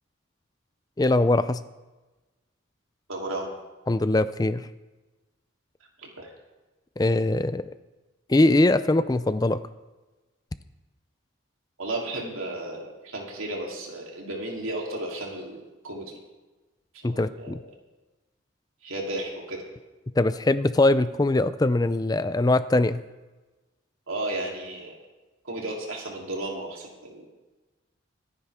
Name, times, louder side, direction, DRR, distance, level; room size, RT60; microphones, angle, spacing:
voice 1, 1.0-1.6 3.9-4.7 7.0-7.7 8.3-9.6 17.0-17.6 20.2-23.0, left 2 dB, 20° left, 13 dB, 0.4 m, -22 dB
voice 2, 3.1-3.5 6.0-6.3 11.8-16.2 17.1-17.6 18.8-19.6 24.1-25.0 25.4-27.3, right 1 dB, 85° right, -1 dB, 3.4 m, -34 dB
26.5 x 9.8 x 3.6 m, 1.2 s
head